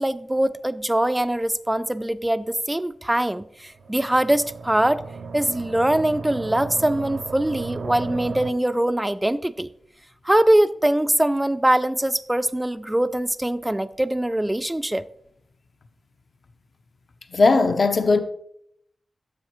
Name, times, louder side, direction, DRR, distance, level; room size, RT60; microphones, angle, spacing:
voice 1, 0.0-5.0 5.3-9.7 10.2-15.1, right 1 dB, 10° right, 0.4 m, -22 dB
sound 1, 3.7-8.5, right 5 dB, 80° right, 0.5 m, -35 dB
voice 2, 17.3-18.2, left 3 dB, 55° left, 0.7 m, -18 dB
10.5 x 7.1 x 3.1 m
cardioid pair, 65°, 0 cm